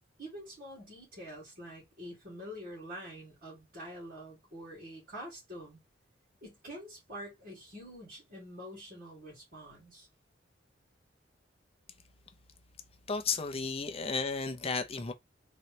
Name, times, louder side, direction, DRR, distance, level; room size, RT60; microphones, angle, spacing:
voice 1, 0.2-5.8 6.4-10.1, equal, 50° right, 2.6 m, -46 dB
voice 2, 13.1-15.1, left 4 dB, 30° left, 0.6 m, -33 dB
4.0 x 2.9 x 3.2 m
head